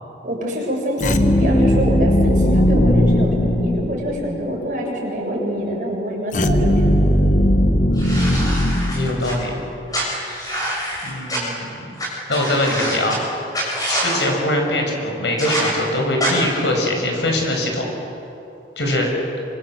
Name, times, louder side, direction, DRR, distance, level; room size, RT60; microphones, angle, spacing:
voice 1, 0.2-7.3, equal, 45° right, -2 dB, 7.4 m, -25 dB
sound 1, 1.0-4.3 6.3-9.6, equal, 45° left, 1.3 m, -17 dB
voice 2, 7.9-8.5 8.9-9.5 11.0-11.9 12.3-13.2 13.5-17.9 18.8-19.1, left 1 dB, 80° left, 1 dB, 6.5 m, -23 dB
sound 2, 8.0-9.3 9.9-11.4 12.0-12.1 12.3-13.2 13.5-14.2 15.4-15.7 16.2-16.3, right 1 dB, 20° left, 7.5 m, -25 dB
27.0 x 25.5 x 8.0 m, 2.9 s
head